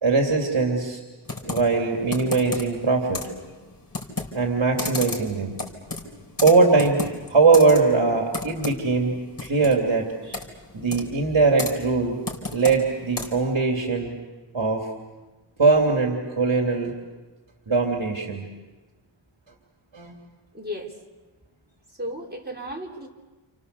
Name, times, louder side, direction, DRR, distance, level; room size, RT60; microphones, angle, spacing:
voice 1, 0.0-1.0 1.4-3.2 4.3-5.6 6.4-7.0 7.3-10.4 10.7-12.2 12.5-14.1 14.5-14.9 15.6-16.9 17.7-18.4 19.9-20.2, right 4 dB, 65° right, 1 dB, 3.0 m, -21 dB
Computer keyboard, 1.3-13.5, left 2 dB, 45° left, 4.2 m, -35 dB
voice 2, 20.5-21.0 21.9-23.1, equal, 20° right, -1 dB, 4.3 m, -34 dB
29.5 x 29.0 x 6.9 m, 1.2 s
wide cardioid pair, 75°, 48 cm